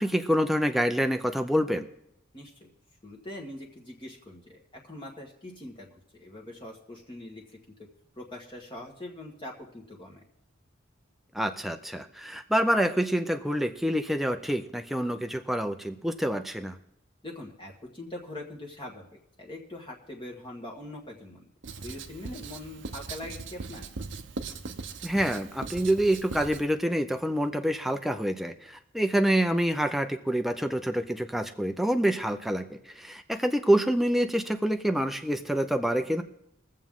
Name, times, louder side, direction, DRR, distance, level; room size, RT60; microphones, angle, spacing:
voice 1, 0.0-1.9 11.3-16.8 25.0-36.2, equal, ahead, 6 dB, 0.5 m, -27 dB
voice 2, 2.3-2.7 3.0-4.6 4.8-5.9 6.1-7.6 8.2-10.2 17.2-21.5 21.8-23.9, left 1 dB, 25° left, -2 dB, 1.3 m, -42 dB
Writing, 21.6-26.6, right 4 dB, 65° right, 0.8 m, -40 dB
22.0 x 7.5 x 3.7 m, 0.79 s
head